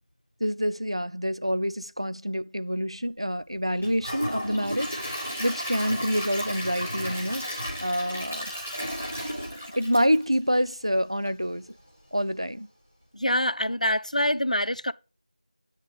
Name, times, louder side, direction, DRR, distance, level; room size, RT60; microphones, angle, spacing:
voice 1, 0.4-8.5 9.8-11.7 12.1-12.7, equal, 40° right, 0.4 m, -27 dB
Gurgling / Toilet flush / Trickle dribble, 3.8-10.8 11.2-11.3 11.8-11.9, equal, 15° right, 1.3 m, -34 dB
voice 2, 13.1-14.9, left 1 dB, 65° left, 0.5 m, -25 dB
9.8 x 4.8 x 5.0 m
figure-of-eight pair, 180°, 4 cm